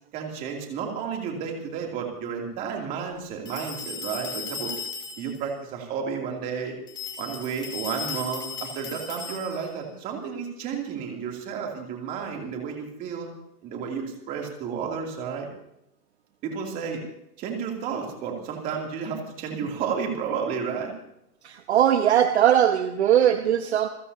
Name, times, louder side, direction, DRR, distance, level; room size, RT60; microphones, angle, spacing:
voice 1, 0.1-4.7 5.2-6.7 7.2-13.3 13.6-15.5 16.4-17.0 17.4-20.9, right 6 dB, 15° right, 1 dB, 2.9 m, -32 dB
sound 1, 3.4-5.4 6.9-9.8, left 5 dB, 10° left, 3.2 m, -36 dB
voice 2, 21.4-23.9, right 10 dB, 45° right, 7 dB, 1.2 m, -20 dB
28.5 x 15.5 x 2.8 m, 0.81 s
hypercardioid pair, 165°, 47 cm